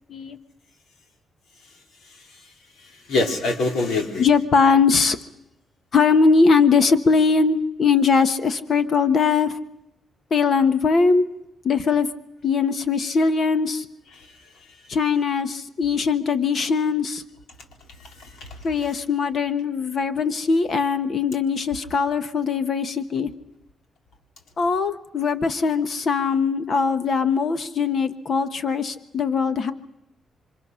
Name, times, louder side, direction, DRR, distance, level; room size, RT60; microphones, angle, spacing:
voice 1, 2.1-2.5 2.8-4.2 14.2-14.4 18.0-18.6, left 2 dB, 75° left, 3 dB, 4.1 m, -27 dB
voice 2, 4.2-5.2 5.9-9.6 10.3-11.2 11.6-12.1 12.4-13.9 14.9-17.2 18.6-23.3 24.6-29.7, left 5 dB, 45° left, 10 dB, 1.2 m, -20 dB
29.0 x 25.0 x 6.4 m, 0.89 s
cardioid pair, 145°, 0 cm